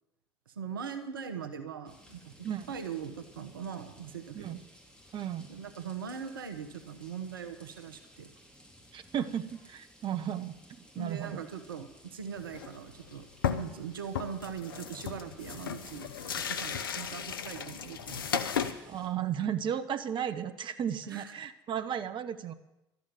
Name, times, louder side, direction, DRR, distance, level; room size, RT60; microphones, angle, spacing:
voice 1, 0.5-2.3 2.7-4.6 5.5-8.3 10.9-13.3 13.5-18.4 18.8-18.9 21.1-21.3, right 7 dB, 85° right, 9 dB, 1.1 m, -41 dB
sound 1, 1.8-19.1, equal, 5° left, 4.0 m, -57 dB
voice 2, 2.4-2.7 4.3-4.6 5.1-5.5 8.9-10.5 10.9-11.4 18.9-22.5, right 9 dB, 45° right, 10 dB, 1.1 m, -34 dB
sound 2, 12.4-12.8 13.1-13.2 13.4-13.8 14.1-18.7, left 7 dB, 85° left, 0.9 m, -35 dB
12.5 x 8.6 x 9.2 m, 0.90 s
hypercardioid pair, 60°, 11 cm